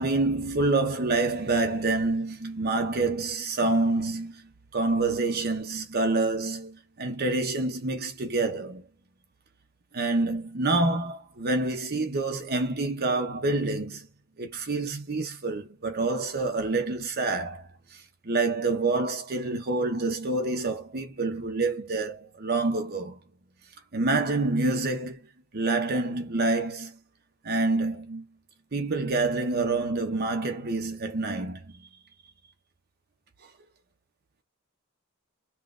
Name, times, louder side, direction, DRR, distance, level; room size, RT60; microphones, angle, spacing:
voice 1, 0.0-8.9 9.9-14.1 14.4-23.2 23.9-25.3 25.5-27.0 27.4-28.3 28.7-31.9, right 3 dB, 45° right, 0.8 m, -27 dB
5.7 x 2.4 x 2.4 m
head